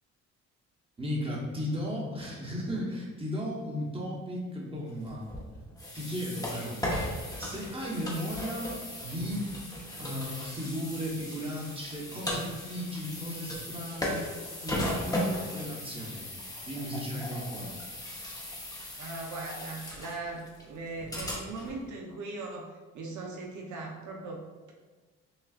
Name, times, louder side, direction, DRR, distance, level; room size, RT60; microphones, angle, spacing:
voice 1, 1.0-5.3 5.9-6.8 7.4-9.5 10.0-14.3 14.6-16.3 16.7-17.7, equal, 20° right, -4 dB, 1.1 m, -35 dB
sound 1, 5.1-21.8, left 1 dB, 10° left, 0.9 m, -37 dB
voice 2, 19.0-24.4, right 3 dB, 70° right, -1 dB, 0.7 m, -39 dB
6.2 x 2.3 x 2.4 m, 1.4 s
cardioid pair, 90°, 30 cm